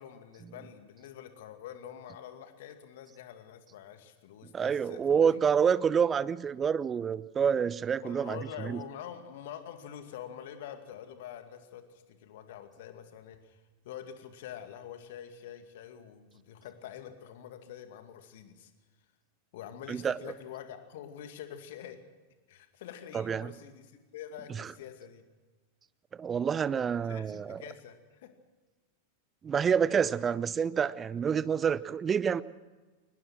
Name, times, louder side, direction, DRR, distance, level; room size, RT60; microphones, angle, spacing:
voice 1, 0.0-5.4 8.0-18.7 19.5-22.0 22.5-25.2 27.1-28.3, left 9 dB, 55° left, 8 dB, 2.3 m, -46 dB
voice 2, 4.5-8.8 19.9-20.2 23.1-23.5 24.5-24.7 26.2-27.6 29.4-32.4, right 7 dB, 20° right, 19 dB, 0.7 m, -28 dB
23.0 x 19.5 x 6.2 m, 1.3 s
figure-of-eight pair, 90°, 0 cm